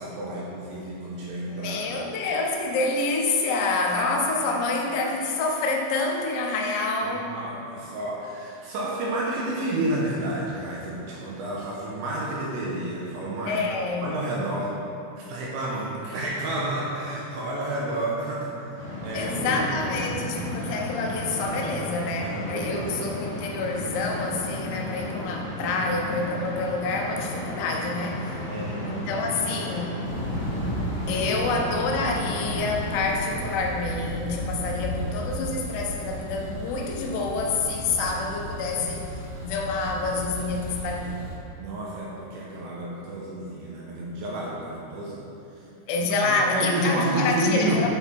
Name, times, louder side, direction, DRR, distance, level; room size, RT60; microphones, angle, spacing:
voice 1, 0.0-2.0 3.8-4.0 7.0-13.7 14.0-14.8 15.2-19.6 22.2-23.1 28.5-29.1 31.1-31.4 41.6-45.2 46.0-47.9, right 1 dB, 80° right, -4 dB, 2.8 m, -30 dB
voice 2, 1.4-7.4 13.5-14.1 19.1-28.3 28.9-30.0 31.1-39.1 39.4-41.3 45.9-47.9, left 3 dB, 85° left, 1 dB, 3.5 m, -27 dB
sound 1, 18.8-32.8, left 1 dB, 55° left, 2.3 m, -34 dB
Thunder, 30.0-41.3, equal, 50° right, 2.2 m, -34 dB
10.0 x 4.1 x 4.4 m, 2.7 s
omnidirectional pair, 5.8 m